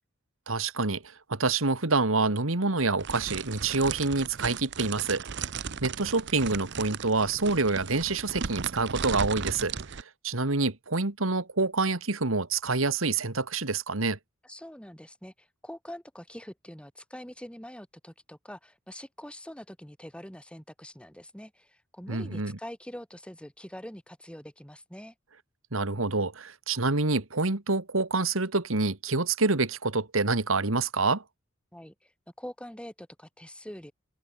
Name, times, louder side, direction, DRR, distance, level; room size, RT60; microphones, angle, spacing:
voice 1, 0.5-1.0 1.3-5.2 5.8-9.7 10.2-14.2 22.1-22.6 25.7-31.2, right 3 dB, 80° right, 2.1 m, -27 dB
sound 1, 3.0-10.0, right 6 dB, 60° right, 0.8 m, -36 dB
voice 2, 14.4-25.1 31.7-32.1 32.4-33.9, equal, 5° left, 7.0 m, -44 dB
open air
head